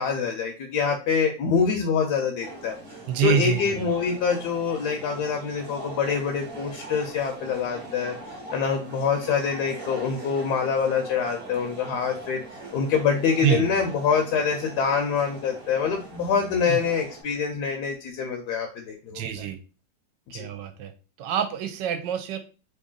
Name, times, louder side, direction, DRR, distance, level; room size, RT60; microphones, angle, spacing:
voice 1, 0.0-2.8 3.2-8.2 8.5-19.2 20.3-20.4, left 6 dB, 70° left, 3 dB, 1.1 m, -25 dB
sound 1, 2.4-17.2, right 2 dB, 40° right, 0.9 m, -41 dB
voice 2, 3.1-3.9 13.4-13.7 16.7-16.8 19.1-19.6 20.3-20.9 21.2-22.4, right 10 dB, 80° right, 8 dB, 1.2 m, -26 dB
3.1 x 2.7 x 3.7 m, 0.33 s
omnidirectional pair, 2.0 m